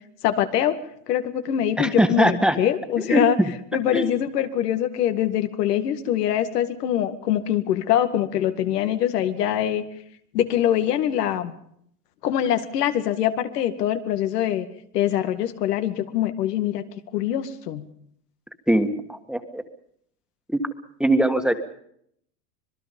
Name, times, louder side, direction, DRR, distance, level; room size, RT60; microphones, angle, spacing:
voice 1, 0.2-0.8 1.1-3.4 3.7-9.8 10.3-11.5 12.2-14.7 14.9-16.8 17.1-17.8, left 11 dB, 90° left, 9 dB, 2.2 m, -23 dB
voice 2, 1.8-2.6 3.0-3.5 3.9-4.1 18.7-19.6 20.5-20.6 21.0-21.5, right 1 dB, ahead, 8 dB, 1.7 m, -21 dB
26.0 x 20.5 x 5.4 m, 0.69 s
supercardioid pair, 130°, 46 cm